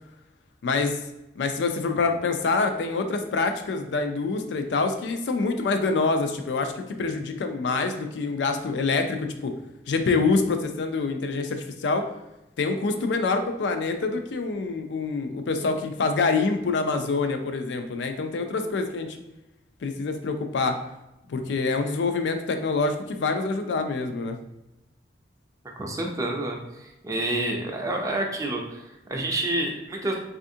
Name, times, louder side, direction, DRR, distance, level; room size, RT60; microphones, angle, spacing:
voice 1, 0.6-1.0 1.4-6.7 7.0-9.5 9.9-12.1 12.6-19.2 19.8-20.7 21.3-24.4, left 4 dB, 80° left, 6 dB, 0.4 m, -26 dB
voice 2, 25.8-30.1, right 1 dB, 20° right, 0 dB, 0.4 m, -29 dB
3.4 x 2.4 x 2.6 m, 0.91 s
head